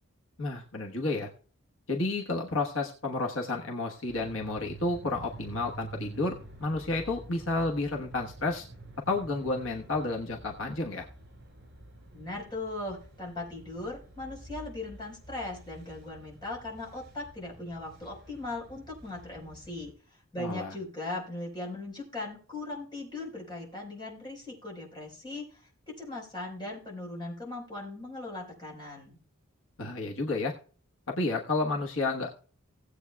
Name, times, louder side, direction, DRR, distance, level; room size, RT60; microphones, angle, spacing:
voice 1, 0.4-1.3 1.9-8.7 9.1-11.1 20.4-20.7 29.8-30.5 31.1-32.3, left 2 dB, 70° left, 1 dB, 1.3 m, -31 dB
sound 1, 4.1-19.9, right 2 dB, 55° right, 5.7 m, -49 dB
voice 2, 12.1-25.6 25.9-29.2, left 2 dB, 20° left, -2 dB, 4.7 m, -39 dB
18.5 x 8.1 x 2.3 m, 0.41 s
head